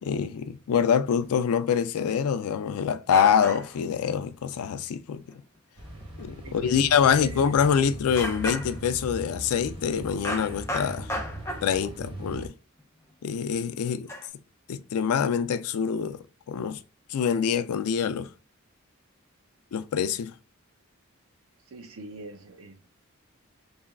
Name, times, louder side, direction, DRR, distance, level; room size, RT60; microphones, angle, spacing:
voice 1, 0.0-5.2 6.2-11.1 11.6-12.5 13.2-14.1 14.7-16.8 17.1-18.3 19.7-20.3, left 7 dB, 85° left, 0.4 m, -25 dB
sound 1, 1.2-1.3 2.6-2.7 3.1-3.8 4.2-4.3 4.7-4.8 5.1-5.4 6.0-6.3 6.5-6.6 7.1-7.2 7.5-7.6 8.2-9.0 10.2-11.9 12.8-12.9 14.1-14.3, left 1 dB, 15° left, 0.6 m, -34 dB
sound 2, 5.8-12.5, right 1 dB, 20° right, 1.1 m, -40 dB
voice 2, 6.4-7.5 21.7-22.9, right 3 dB, 70° right, 0.6 m, -44 dB
3.4 x 2.3 x 3.5 m
head